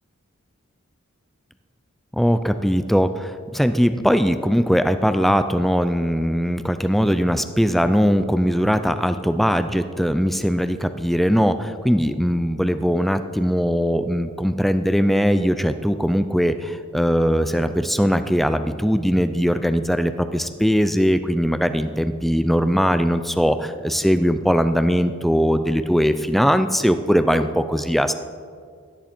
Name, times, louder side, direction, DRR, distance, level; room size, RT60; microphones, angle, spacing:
voice 1, 2.1-28.1, equal, ahead, 10 dB, 0.5 m, -20 dB
17.5 x 13.0 x 4.5 m, 2.1 s
head